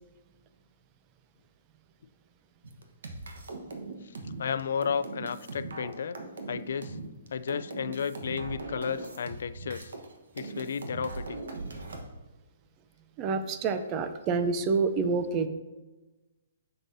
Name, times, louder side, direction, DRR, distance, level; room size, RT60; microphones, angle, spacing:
sound 1, 2.6-10.1 10.4-12.0, right 3 dB, 75° right, 1.2 m, -39 dB
voice 1, 4.4-6.2 6.5-7.0 7.3-9.9 10.3-11.4, left 6 dB, 70° left, 14 dB, 0.3 m, -33 dB
voice 2, 13.2-15.5, right 4 dB, 25° right, 9 dB, 0.6 m, -27 dB
9.7 x 6.7 x 2.7 m, 1.1 s
hypercardioid pair, 150°, 0 cm